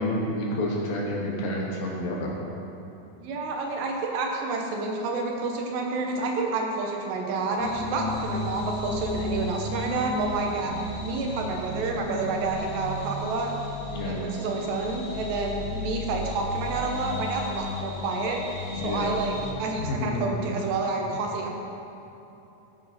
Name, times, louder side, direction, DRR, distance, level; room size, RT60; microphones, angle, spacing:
voice 1, 0.0-2.4 10.7-10.8 13.9-14.3 18.8-19.2 19.8-20.3 21.1-21.2, left 1 dB, 70° left, -2 dB, 2.5 m, -29 dB
voice 2, 3.2-10.7 11.0-13.5 14.0-18.4 18.7-21.6, right 3 dB, 80° right, 1 dB, 3.4 m, -29 dB
sound 1, 7.6-19.5, left 2 dB, 90° left, 5.0 m, -34 dB
14.5 x 9.0 x 4.3 m, 2.9 s
omnidirectional pair, 4.8 m